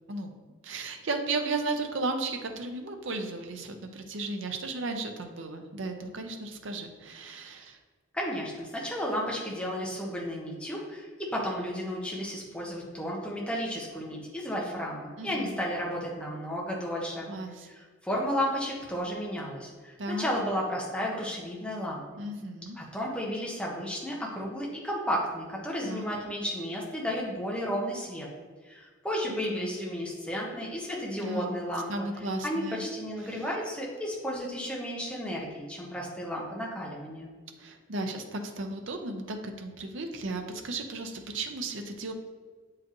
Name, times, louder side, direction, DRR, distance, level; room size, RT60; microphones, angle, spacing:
voice 1, 0.6-7.8 15.2-15.6 17.3-17.7 20.0-20.3 22.2-22.8 25.8-26.1 29.3-29.7 31.2-31.6 31.9-32.8 37.6-42.1, right 2 dB, 75° right, 5 dB, 0.7 m, -35 dB
voice 2, 8.1-17.3 17.7-22.2 22.7-28.3 28.6-32.1 32.4-37.3, equal, 5° left, -4 dB, 1.0 m, -33 dB
7.3 x 4.8 x 3.0 m, 1.4 s
head